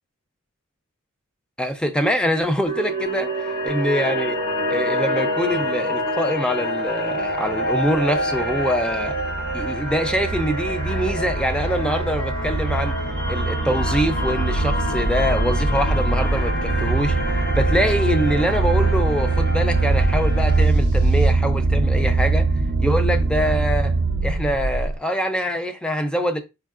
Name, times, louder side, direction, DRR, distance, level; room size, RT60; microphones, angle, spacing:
voice 1, 1.6-4.4 4.7-9.2 9.5-13.0 13.3-17.2 17.6-22.5 22.8-24.0 24.2-26.4, equal, 5° left, 0.4 m, -24 dB
sound 1, 2.6-20.7, equal, 40° left, 1.8 m, -27 dB
sound 2, 7.6-25.0, right 3 dB, 50° right, 0.5 m, -23 dB
sound 3, 14.3-16.4 19.8-21.3, equal, 85° left, 1.0 m, -25 dB
4.6 x 4.5 x 2.4 m
head